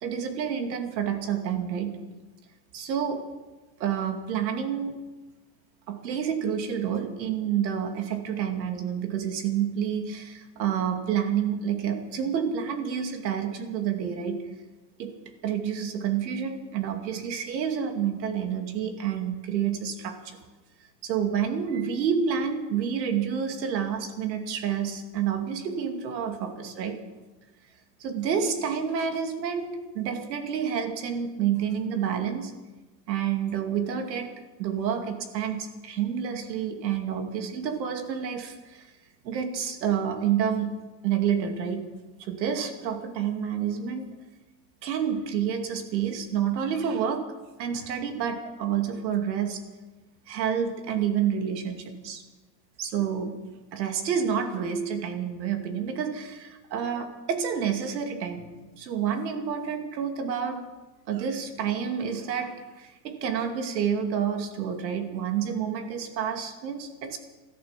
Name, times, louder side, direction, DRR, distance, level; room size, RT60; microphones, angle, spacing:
voice 1, 0.0-2.1 2.7-3.3 3.8-4.9 5.9-14.5 15.0-15.1 15.4-20.4 21.0-27.0 28.0-32.5 33.1-34.3 34.6-38.9 39.2-40.8 41.0-41.9 42.2-44.1 44.8-47.3 47.6-49.6 50.3-52.2 52.8-53.4 53.7-58.5 58.8-60.6 61.1-67.2, right 8 dB, 85° right, 6 dB, 2.5 m, -29 dB
14.0 x 14.0 x 7.4 m, 1.2 s
supercardioid pair, 160°, 50 cm